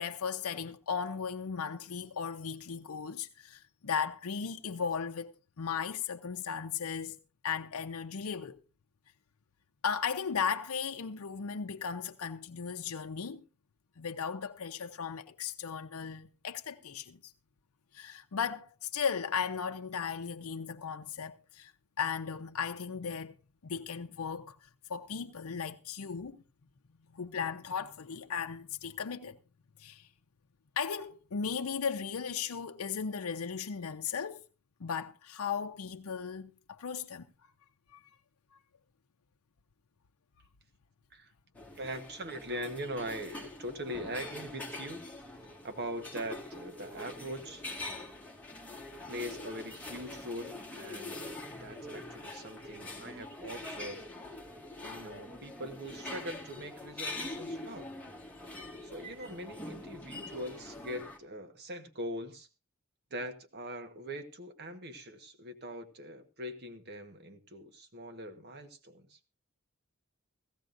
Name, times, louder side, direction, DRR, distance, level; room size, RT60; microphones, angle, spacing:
voice 1, 0.0-7.2 7.4-8.6 9.8-13.4 14.0-17.3 17.9-21.7 22.0-23.3 23.6-26.4 27.1-29.4 29.8-30.1 30.8-34.4 34.8-37.3 37.9-38.0, left 6 dB, 85° left, 0.6 m, -36 dB
sound 1, 41.5-61.2, left 2 dB, 5° left, 1.8 m, -44 dB
voice 2, 41.7-45.0 45.6-47.6 49.1-54.0 54.8-57.9 58.8-62.5 63.1-69.2, equal, 50° right, 1.3 m, -42 dB
16.5 x 15.5 x 2.6 m
head